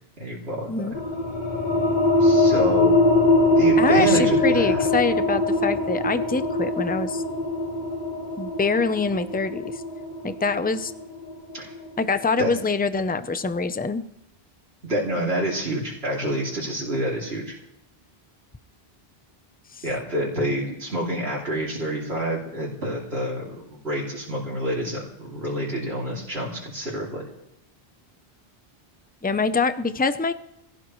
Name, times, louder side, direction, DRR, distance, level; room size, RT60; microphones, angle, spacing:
voice 1, 0.2-0.9 2.2-3.0 3.6-4.9 11.5-11.7 12.4-12.5 14.8-17.5 19.8-27.3, right 1 dB, 75° right, -5 dB, 3.3 m, -28 dB
sound 1, 0.9-12.2, left 1 dB, 45° left, 1.9 m, -22 dB
voice 2, 3.8-7.2 8.4-9.8 10.2-10.9 12.0-14.0 29.2-30.3, left 4 dB, 10° left, 11 dB, 0.6 m, -24 dB
22.5 x 16.5 x 3.2 m, 0.83 s
omnidirectional pair, 1.1 m